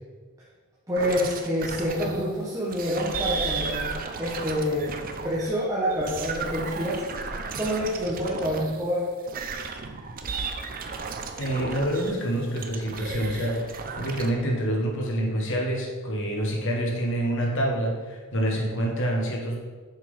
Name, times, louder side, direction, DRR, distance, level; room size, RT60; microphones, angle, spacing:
voice 1, 0.9-4.9 5.2-7.0 7.5-9.1, equal, 15° right, -7 dB, 1.4 m, -27 dB
sound 1, 1.0-2.3 2.7-8.8 9.2-12.2 12.6-14.3, right 4 dB, 40° right, 0.7 m, -34 dB
voice 2, 11.4-19.6, right 1 dB, 60° left, -1 dB, 1.7 m, -27 dB
7.0 x 6.0 x 5.6 m, 1.5 s
head